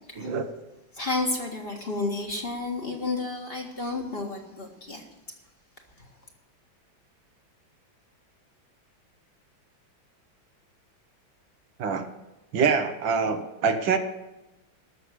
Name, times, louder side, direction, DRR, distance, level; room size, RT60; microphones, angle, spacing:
voice 1, 0.1-0.5 11.8-12.1 12.5-14.0, right 5 dB, 70° right, 7 dB, 1.8 m, -25 dB
voice 2, 0.9-5.0, left 3 dB, 30° left, 1 dB, 1.9 m, -31 dB
13.5 x 6.7 x 10.0 m, 1.0 s
omnidirectional pair, 2.2 m